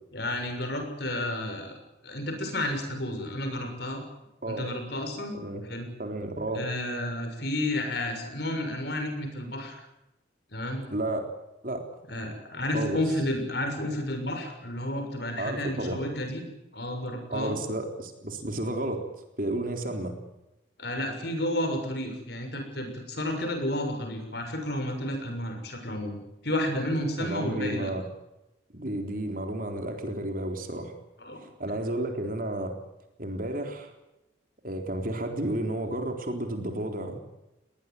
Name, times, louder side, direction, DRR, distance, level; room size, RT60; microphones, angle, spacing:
voice 1, 0.1-1.8 2.0-4.0 4.5-5.4 5.6-5.9 6.5-9.8 10.5-10.8 12.1-16.5 16.7-17.5 20.8-27.9 31.2-31.4, left 1 dB, 55° left, 5 dB, 6.7 m, -31 dB
voice 2, 6.0-6.6 10.9-11.3 11.6-11.8 12.7-13.0 15.4-16.0 17.3-19.0 19.4-20.1 27.2-28.1 28.7-30.9 31.4-32.7 33.2-33.9 34.6-37.2, right 1 dB, 45° right, 5 dB, 3.8 m, -32 dB
21.0 x 20.0 x 9.4 m, 0.92 s
head